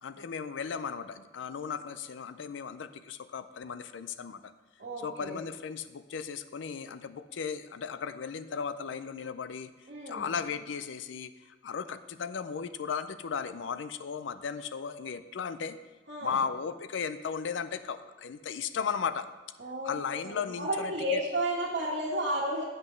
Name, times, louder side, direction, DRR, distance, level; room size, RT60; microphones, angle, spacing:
voice 1, 0.0-4.5 5.0-9.7 10.1-15.8 16.2-19.3 19.8-21.2, left 6 dB, 85° left, 12 dB, 0.4 m, -36 dB
voice 2, 4.8-5.4 9.9-10.3 16.1-16.4 19.6-22.6, right 1 dB, 65° right, -7 dB, 1.4 m, -32 dB
7.8 x 6.0 x 5.1 m, 1.2 s
head